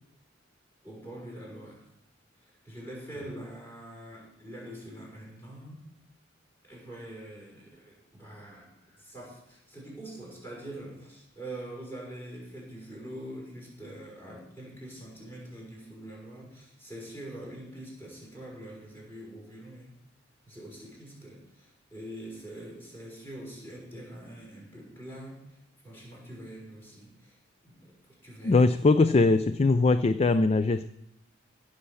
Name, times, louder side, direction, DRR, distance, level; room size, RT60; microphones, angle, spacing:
voice 1, 0.8-1.9 2.6-5.9 6.6-19.9 20.4-25.4 25.8-27.4 27.6-28.6, right 1 dB, 15° left, -3 dB, 6.0 m, -44 dB
voice 2, 28.4-30.9, left 3 dB, 35° left, 13 dB, 0.4 m, -21 dB
16.5 x 6.5 x 7.0 m, 0.80 s
head